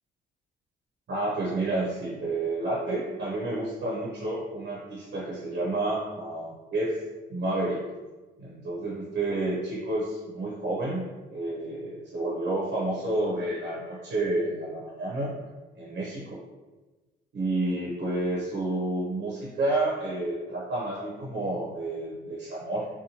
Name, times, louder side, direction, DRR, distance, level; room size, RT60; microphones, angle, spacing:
voice 1, 1.1-7.0 7.3-7.8 8.4-11.0 11.3-15.5 15.8-16.4 17.3-22.9, right 2 dB, 60° right, -6 dB, 0.8 m, -30 dB
2.8 x 2.1 x 2.8 m, 1.2 s
cardioid pair, 90°, 20 cm